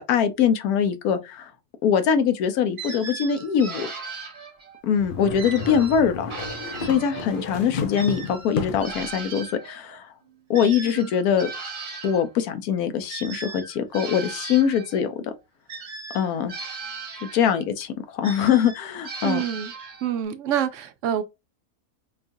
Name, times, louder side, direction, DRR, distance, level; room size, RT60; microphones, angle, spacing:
voice 1, 0.0-1.5 1.8-3.9 4.8-6.4 6.8-10.1 10.5-11.5 12.0-15.3 16.1-16.5 17.2-19.4, left 8 dB, 85° left, 1.2 m, -23 dB
sound 1, 2.8-4.8 5.4-7.4 7.9-12.3 13.1-15.1 15.7-17.7 18.2-20.2, right 4 dB, 50° right, 1.1 m, -37 dB
sound 2, 5.0-9.0, left 4 dB, 50° left, 0.7 m, -32 dB
voice 2, 19.2-19.7 20.0-21.2, right 9 dB, 65° right, 0.9 m, -26 dB
5.3 x 2.4 x 2.6 m
omnidirectional pair, 1.5 m